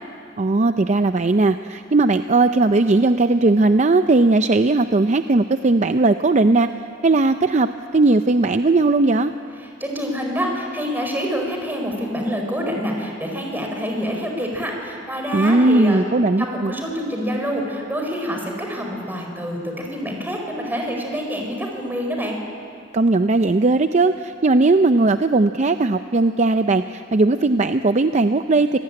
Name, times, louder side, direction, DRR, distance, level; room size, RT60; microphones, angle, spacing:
voice 1, 0.4-6.7 7.0-9.3 15.3-16.7 22.9-28.8, right 2 dB, 40° right, 9 dB, 0.6 m, -18 dB
voice 2, 9.8-16.0 16.4-22.4, equal, 10° right, 1 dB, 4.7 m, -26 dB
26.5 x 18.5 x 9.9 m, 2.4 s
head